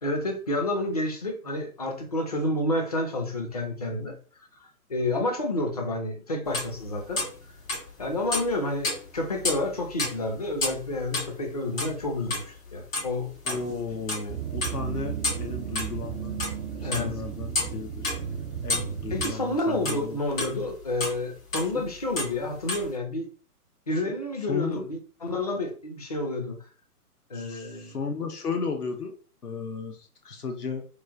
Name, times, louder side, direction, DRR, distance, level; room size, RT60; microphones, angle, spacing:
voice 1, 0.0-4.2 4.6-7.2 8.0-13.6 16.8-17.1 19.1-23.3 23.9-26.6 27.3-28.0, left 1 dB, 25° left, 0.5 m, -29 dB
sound 1, 6.5-8.0 8.3-11.4 11.6-12.7 12.9-13.1 13.4-14.3 14.6-15.9 16.3-17.1 17.5-18.2 18.7-20.7 21.0-21.2 21.5-22.4 22.7-22.9, left 2 dB, 55° left, 1.6 m, -30 dB
voice 2, 13.5-16.4 16.8-18.1 18.6-20.2 21.7-21.8 24.0-24.1 24.5-24.9 27.3-29.1 29.4-30.8, left 4 dB, 80° left, 0.8 m, -34 dB
sound 2, 14.3-19.3, right 9 dB, 75° right, 0.7 m, -34 dB
3.1 x 2.2 x 3.5 m
figure-of-eight pair, 125°, 45 cm